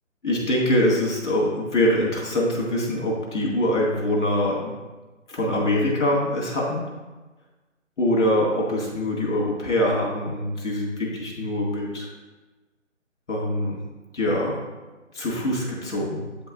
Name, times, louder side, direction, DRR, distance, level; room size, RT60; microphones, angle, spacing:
voice 1, 0.2-4.7 5.3-6.8 8.0-12.1 13.3-13.8 14.1-14.6 15.1-16.2, left 1 dB, 65° left, -3 dB, 2.2 m, -24 dB
8.8 x 5.2 x 2.6 m, 1.2 s
hypercardioid pair, 175°, 38 cm